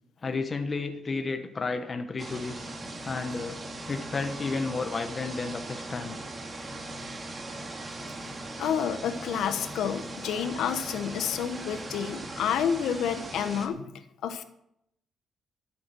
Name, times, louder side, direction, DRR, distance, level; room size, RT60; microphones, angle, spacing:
voice 1, 0.2-2.6 3.0-3.6 3.9-6.2 10.2-10.3, left 4 dB, 35° left, 6 dB, 1.0 m, -32 dB
sound 1, 2.2-13.7, right 2 dB, 30° right, 2.0 m, -39 dB
voice 2, 8.6-13.9 14.2-14.4, left 8 dB, 85° left, 9 dB, 1.1 m, -29 dB
12.5 x 8.6 x 6.1 m, 0.78 s
cardioid pair, 105°, 0 cm